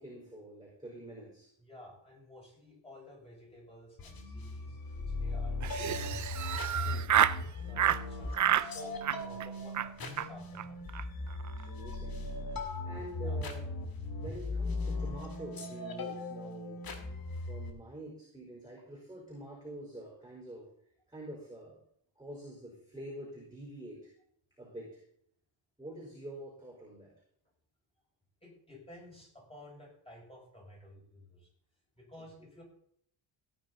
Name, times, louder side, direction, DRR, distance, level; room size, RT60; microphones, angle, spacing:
voice 1, 0.0-1.5 6.4-7.1 11.6-12.2 12.8-13.7 14.1-16.9 17.3-20.7 21.1-21.8 22.2-24.1 24.6-25.0 25.8-27.1 32.2-32.3, right 1 dB, 10° right, -4 dB, 4.6 m, -47 dB
voice 2, 1.6-6.0 6.6-7.0 7.6-10.8 13.2-13.4 28.4-31.5 32.0-32.6, left 1 dB, 10° left, -3 dB, 6.5 m, -53 dB
sound 1, 4.0-17.7, left 2 dB, 45° left, 2.2 m, -38 dB
Laughter, 5.6-7.4 7.8-8.0 8.3-8.7 9.0-9.5 9.7-9.9 10.2-10.3 10.5-10.6 10.9-11.0 11.3-11.6, right 10 dB, 40° right, 0.5 m, -29 dB
16.5 x 9.5 x 4.1 m, 0.67 s
wide cardioid pair, 155°, 47 cm